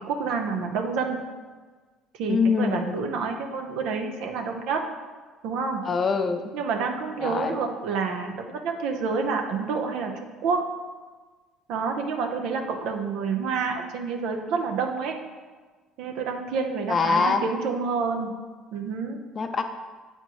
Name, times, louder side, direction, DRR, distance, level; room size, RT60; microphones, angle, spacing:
voice 1, 0.1-1.2 2.2-4.8 5.4-5.8 6.5-10.1 10.4-10.7 11.7-15.2 16.0-18.3 18.7-19.2, right 5 dB, 70° right, 3 dB, 0.7 m, -28 dB
voice 2, 2.3-3.0 5.8-6.5 7.2-7.6 16.9-17.4 19.3-19.6, left 5 dB, 40° left, 7 dB, 0.6 m, -24 dB
7.7 x 4.4 x 3.0 m, 1.4 s
hypercardioid pair, 65°, 0 cm